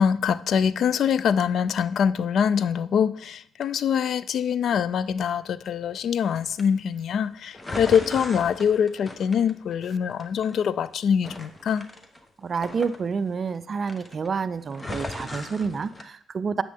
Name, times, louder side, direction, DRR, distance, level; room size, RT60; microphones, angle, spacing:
voice 1, 0.0-11.9, left 7 dB, 65° left, 0.3 m, -24 dB
sound 1, 6.3-6.6 7.5-9.9 10.2-10.9 11.2-13.6 13.8-14.3 14.7-16.0, left 2 dB, 20° left, 1.0 m, -37 dB
voice 2, 12.4-16.6, right 5 dB, 45° right, 0.4 m, -28 dB
9.8 x 7.7 x 3.5 m
cardioid pair, 90°, 0 cm